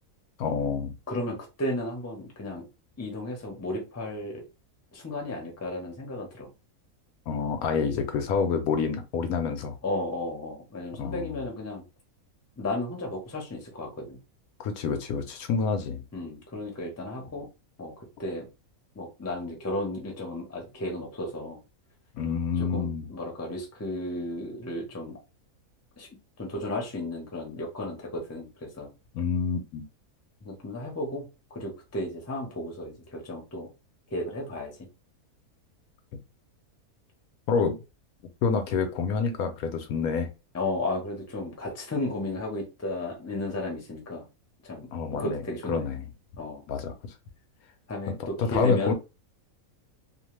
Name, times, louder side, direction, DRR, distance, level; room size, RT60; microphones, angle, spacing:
voice 1, 0.4-1.0 7.3-9.8 11.0-11.4 14.6-16.0 22.1-23.1 29.1-29.9 37.5-37.7 38.4-40.3 44.9-45.4 45.7-46.1 46.7-46.9 48.1-48.9, left 5 dB, 80° left, 1.1 m, -27 dB
voice 2, 1.1-2.7 3.0-4.4 4.9-6.5 9.8-11.8 12.6-14.2 16.1-17.5 17.8-18.5 18.9-21.6 22.6-25.2 26.0-26.1 26.4-28.9 30.4-33.7 34.1-34.7 40.5-44.2 44.6-45.8 46.4-46.6 47.9-48.9, left 1 dB, 15° left, 0.6 m, -34 dB
2.7 x 2.1 x 3.1 m
omnidirectional pair, 1.5 m